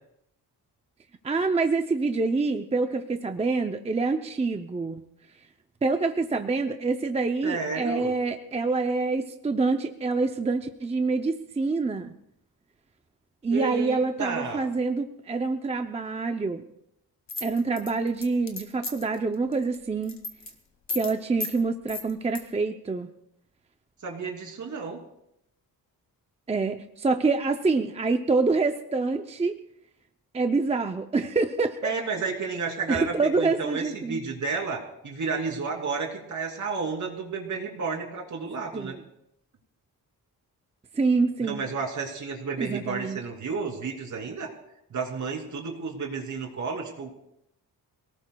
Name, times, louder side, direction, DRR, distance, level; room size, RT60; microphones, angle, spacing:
voice 1, 1.2-5.0 5.8-12.1 13.4-16.6 17.4-20.1 20.9-23.1 26.5-29.6 30.3-31.9 32.9-34.2 38.7-39.0 40.9-41.6 42.6-43.2, right 3 dB, 15° right, 6 dB, 0.5 m, -26 dB
voice 2, 7.4-8.1 13.5-14.7 24.0-25.0 31.8-38.9 41.4-44.5 44.9-47.1, right 4 dB, 50° right, 2 dB, 2.9 m, -31 dB
sound 1, 17.3-19.1 19.5-19.8 20.0-20.5 20.9-21.1 21.4-21.5 21.9-22.4, left 3 dB, 45° left, 2.0 m, -34 dB
26.5 x 18.5 x 2.3 m, 0.79 s
wide cardioid pair, 175°, 37 cm